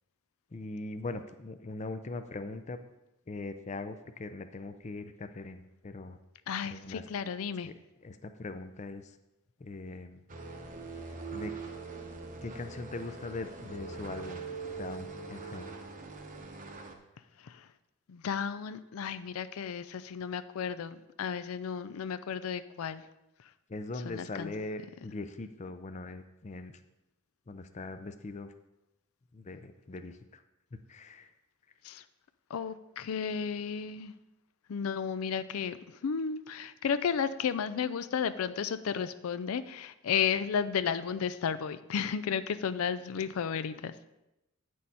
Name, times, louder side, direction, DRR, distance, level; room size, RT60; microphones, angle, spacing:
voice 1, 0.5-2.8 3.3-6.2 6.7-7.0 7.6-7.7 8.0-9.1 9.6-10.2 11.3-11.5 12.4-14.4 14.8-15.7 23.7-26.8 27.5-28.5 29.3-30.2 30.9-31.3, left 3 dB, 35° left, 9 dB, 0.5 m, -41 dB
voice 2, 6.5-7.7 17.4-17.7 18.1-23.0 24.0-24.5 31.8-32.0 32.5-34.1 34.7-35.8 36.0-43.9, left 7 dB, 90° left, 13 dB, 0.4 m, -33 dB
sound 1, 10.3-16.9, right 4 dB, 40° right, 0.8 m, -42 dB
9.1 x 6.4 x 4.2 m, 0.94 s
head